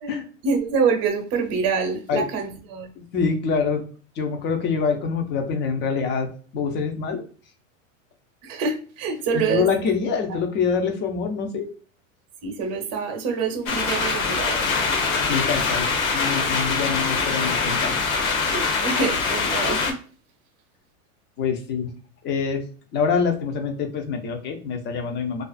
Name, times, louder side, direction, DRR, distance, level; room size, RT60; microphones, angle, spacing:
voice 1, 0.4-2.9 8.4-9.7 12.4-14.6 18.5-20.0, right 5 dB, 40° right, 0.8 m, -26 dB
voice 2, 3.1-3.8 4.2-6.3 6.5-7.2 9.3-11.7 15.3-15.9 16.1-17.9 21.4-21.9 22.2-22.6 22.9-25.4, left 5 dB, 25° left, 0.5 m, -25 dB
sound 1, 13.7-19.9, left 4 dB, 85° left, 0.8 m, -23 dB
2.4 x 2.3 x 2.3 m
supercardioid pair, 125°, 40 cm